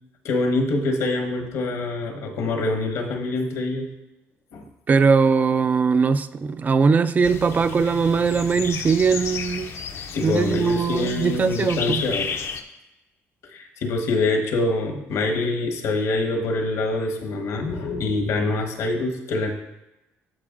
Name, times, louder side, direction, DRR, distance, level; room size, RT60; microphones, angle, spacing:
voice 1, 0.2-3.9 4.5-4.6 10.1-12.3 13.5-19.5, left 2 dB, 75° left, 3 dB, 1.1 m, -25 dB
voice 2, 4.9-9.7 10.2-12.0, right 5 dB, 30° right, 13 dB, 0.4 m, -20 dB
sound 1, 7.2-12.6, left 6 dB, 55° left, 0.6 m, -33 dB
12.5 x 4.5 x 2.5 m, 0.97 s
cardioid pair, 90°, 5 cm